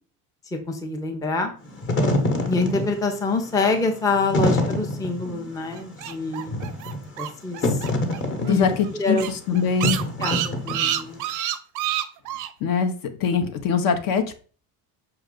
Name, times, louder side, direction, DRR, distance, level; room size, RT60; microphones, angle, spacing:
voice 1, 0.7-1.5 2.5-6.5 7.2-7.8 8.4-9.3 10.2-11.2, left 3 dB, 10° left, 4 dB, 0.5 m, -26 dB
Wind / Fire, 1.6-11.2, left 1 dB, 25° left, 1.0 m, -26 dB
sound 1, 5.7-8.2 8.5-8.6 8.8-8.9 9.2-12.5, right 11 dB, 45° right, 0.5 m, -28 dB
voice 2, 8.4-10.0 12.6-12.9 13.2-14.3, left 6 dB, 50° left, 7 dB, 0.7 m, -23 dB
5.5 x 2.3 x 3.7 m, 0.40 s
supercardioid pair, 110°, 43 cm